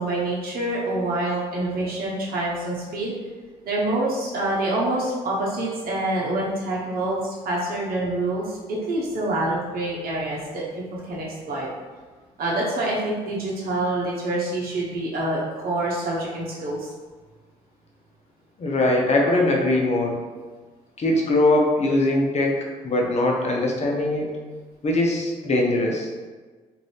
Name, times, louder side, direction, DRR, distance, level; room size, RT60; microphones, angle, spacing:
voice 1, 0.0-3.1 3.7-11.7 12.4-16.9, right 2 dB, 70° right, -5 dB, 0.9 m, -26 dB
voice 2, 18.6-20.2 21.0-22.6 22.8-24.2 24.8-26.1, left 2 dB, 45° left, -1 dB, 0.8 m, -21 dB
2.6 x 2.6 x 3.3 m, 1.4 s
supercardioid pair, 60°, 16 cm